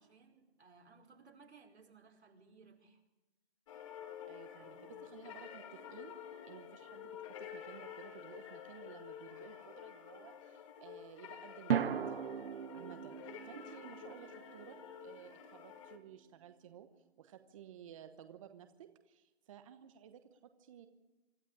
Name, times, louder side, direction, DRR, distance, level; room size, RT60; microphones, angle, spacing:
voice 1, 0.0-3.0 4.4-4.9, right 4 dB, 90° right, 2 dB, 5.1 m, -62 dB
sound 1, 3.7-16.0, left 9 dB, 30° left, 2.1 m, -50 dB
voice 2, 4.3-6.1 6.4-12.2 12.7-16.9 17.2-20.9, right 9 dB, 30° right, 8 dB, 1.1 m, -55 dB
sound 2, 5.7-6.8 11.7-16.0, right 8 dB, 60° right, 0.9 m, -40 dB
25.0 x 12.5 x 8.8 m, 1.1 s
hypercardioid pair, 160°, 32 cm